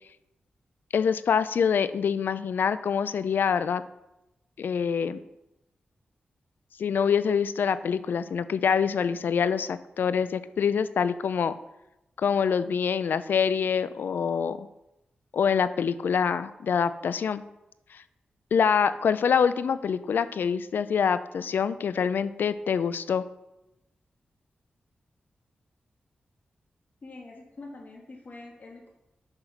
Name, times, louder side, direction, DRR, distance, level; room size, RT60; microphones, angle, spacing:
voice 1, 0.9-3.8 4.6-5.2 6.8-11.5 12.2-14.7 15.3-17.4 17.9-18.0 18.5-23.2, left 7 dB, 80° left, 14 dB, 0.4 m, -25 dB
voice 2, 27.0-28.9, left 2 dB, 50° left, -1 dB, 2.2 m, -45 dB
6.7 x 5.7 x 5.8 m, 0.93 s
cardioid pair, 65°, 3 cm